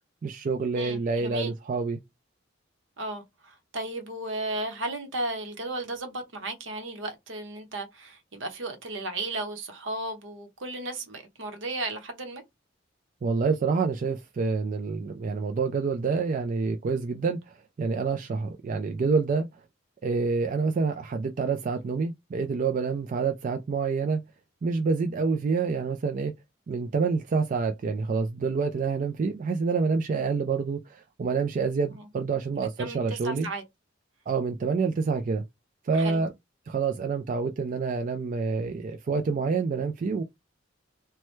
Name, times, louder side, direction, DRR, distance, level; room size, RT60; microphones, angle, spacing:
voice 1, 0.2-2.0 13.2-19.5 20.0-24.2 24.6-26.3 26.7-33.5 34.3-35.4 35.8-36.3 36.7-40.2, right 4 dB, 40° right, 0.3 m, -27 dB
voice 2, 0.7-1.5 3.0-12.4 31.9-32.0 32.5-33.6 35.9-36.2, right 2 dB, 70° right, 0.9 m, -35 dB
3.2 x 2.2 x 3.0 m
head